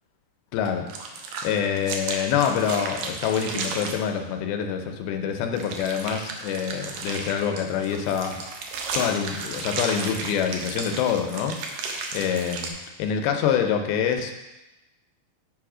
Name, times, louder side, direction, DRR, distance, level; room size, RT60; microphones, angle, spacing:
voice 1, 0.5-0.9 1.4-8.4 8.9-11.9 12.1-12.7 13.0-14.5, left 8 dB, 85° left, 5 dB, 2.6 m, -26 dB
sound 1, 0.6-4.0 5.6-12.7, right 4 dB, 85° right, 1.6 m, -34 dB
9.3 x 3.5 x 4.9 m, 1.0 s
omnidirectional pair, 4.3 m